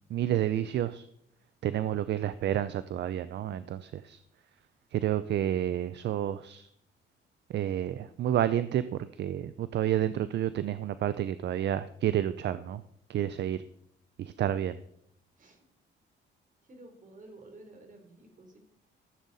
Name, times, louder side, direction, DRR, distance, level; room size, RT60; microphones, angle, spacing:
voice 1, 0.1-1.1 1.6-4.2 4.9-6.7 7.5-8.8 9.2-12.8 13.1-13.6 14.2-14.8, right 11 dB, 65° right, 14 dB, 0.5 m, -30 dB
voice 2, 16.7-18.6, right 2 dB, 40° right, 4 dB, 3.3 m, -52 dB
14.0 x 8.1 x 4.1 m, 0.70 s
cardioid pair, 90°, 20 cm